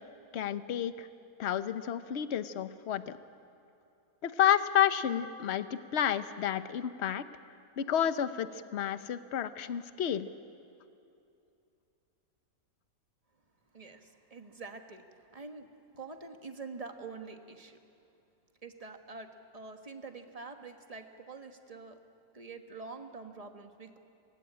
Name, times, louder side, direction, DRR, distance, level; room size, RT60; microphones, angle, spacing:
voice 1, 0.3-1.1 1.4-3.2 4.2-7.3 7.8-10.3, left 10 dB, 50° left, 12 dB, 0.9 m, -30 dB
voice 2, 13.7-15.7 15.9-17.8 18.6-22.0 22.3-24.0, right 4 dB, 25° right, 5 dB, 1.3 m, -46 dB
24.5 x 19.5 x 8.7 m, 2.7 s
omnidirectional pair, 1.8 m